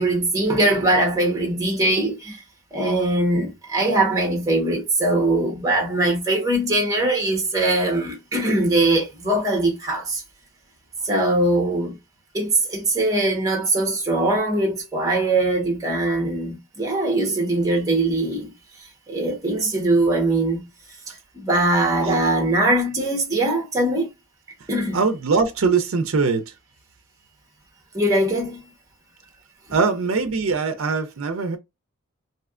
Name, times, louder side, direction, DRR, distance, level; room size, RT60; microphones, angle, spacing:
voice 1, 0.0-2.4 2.7-10.2 11.0-12.0 12.3-18.5 19.1-20.6 21.3-24.1 24.7-25.1 27.9-28.6 29.7-29.8, right 2 dB, 15° right, 1.0 m, -21 dB
voice 2, 24.9-26.5 29.7-31.6, right 4 dB, 70° right, 0.5 m, -22 dB
3.2 x 2.7 x 2.4 m
head